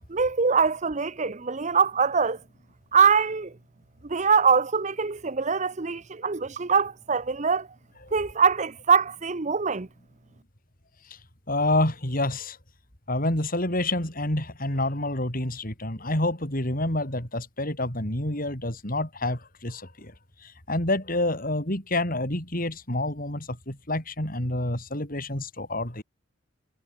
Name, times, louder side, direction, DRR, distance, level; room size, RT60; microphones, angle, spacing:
voice 1, 0.1-2.4 2.9-3.5 4.0-7.7 8.1-9.9, right 6 dB, 35° right, 0.8 m, -23 dB
voice 2, 11.5-12.6 13.1-20.1 20.4-26.0, left 1 dB, 45° left, 5.7 m, -28 dB
head